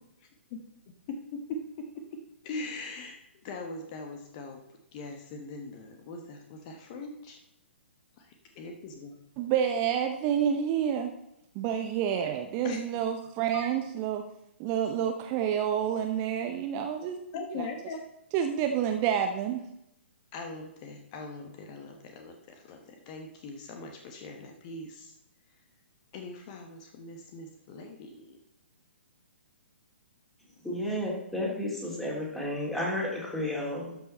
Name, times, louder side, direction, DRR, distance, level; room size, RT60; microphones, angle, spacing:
voice 1, 1.1-3.2 3.4-4.6 4.9-7.4 8.2-9.1 12.6-13.0 13.5-13.6 17.3-18.0 20.3-25.2 26.1-28.4, left 3 dB, 35° left, 4 dB, 1.2 m, -41 dB
voice 2, 9.4-11.1 11.5-14.2 14.6-17.3 18.3-19.6, right 9 dB, 30° right, 5 dB, 0.7 m, -28 dB
voice 3, 30.6-34.0, left 1 dB, 5° left, -3 dB, 2.5 m, -32 dB
12.0 x 5.8 x 4.2 m, 0.82 s
figure-of-eight pair, 120°, 7 cm